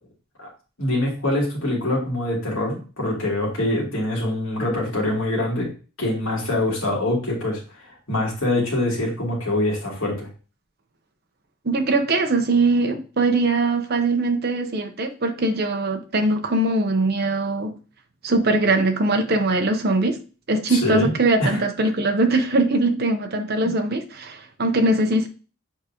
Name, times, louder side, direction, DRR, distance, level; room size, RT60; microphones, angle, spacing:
voice 1, 0.8-5.7 6.0-10.3 20.7-21.1 21.4-21.6, left 1 dB, 70° left, -3 dB, 2.9 m, -24 dB
voice 2, 11.6-17.7 18.2-20.2 20.5-25.3, right 2 dB, 45° right, 4 dB, 0.9 m, -21 dB
7.4 x 4.9 x 3.0 m, 0.35 s
head